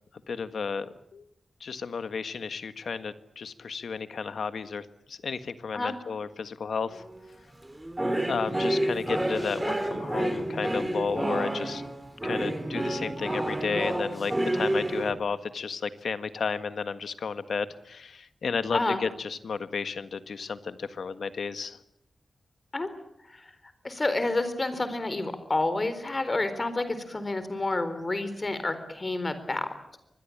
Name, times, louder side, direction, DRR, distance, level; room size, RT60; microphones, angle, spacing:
voice 1, 0.3-1.3 1.6-7.0 8.2-11.8 12.2-21.8, left 5 dB, 85° left, 11 dB, 1.6 m, -33 dB
sound 1, 6.9-7.2 7.7-15.1, right 1 dB, 15° right, 3.4 m, -29 dB
voice 2, 18.7-19.0 22.7-22.9 23.3-23.5 23.8-29.7, left 2 dB, 30° left, 11 dB, 4.1 m, -29 dB
25.0 x 21.0 x 8.6 m, 0.77 s
wide cardioid pair, 120°, 0 cm